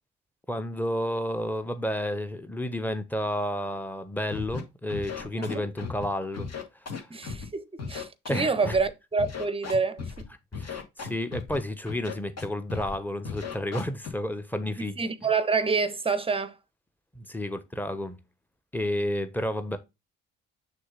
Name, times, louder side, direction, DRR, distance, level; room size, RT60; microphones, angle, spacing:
voice 1, 0.5-6.5 6.9-7.1 8.3-8.8 10.6-15.0 17.1-18.2 18.7-19.8, left 1 dB, 5° left, 1.1 m, -31 dB
Scratching (performance technique), 4.3-4.6 4.9-6.0 6.3-7.4 7.8-8.9 9.2-10.2 10.5-11.6 11.9-12.4 12.7-13.0 13.2-14.1, left 5 dB, 45° left, 2.0 m, -36 dB
voice 2, 7.1-10.3 14.8-16.6, right 4 dB, 15° right, 0.8 m, -27 dB
6.4 x 2.9 x 5.7 m
hypercardioid pair, 50°, 35 cm